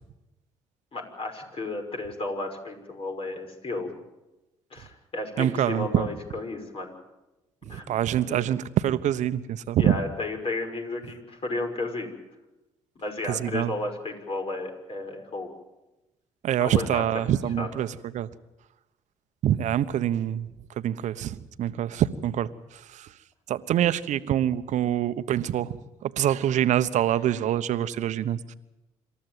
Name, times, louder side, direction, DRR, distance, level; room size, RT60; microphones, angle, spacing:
voice 1, 0.9-3.9 4.7-6.9 7.7-8.5 9.8-12.1 13.0-15.5 16.6-17.7, left 2 dB, 45° left, 4 dB, 5.9 m, -33 dB
voice 2, 5.4-6.1 7.7-10.0 13.3-13.7 16.4-17.9 18.1-18.3 19.4-20.5 20.8-22.5 23.5-25.7 26.0-28.5, right 11 dB, 60° right, 13 dB, 1.1 m, -25 dB
27.0 x 14.0 x 9.3 m, 0.99 s
hypercardioid pair, 55°, 14 cm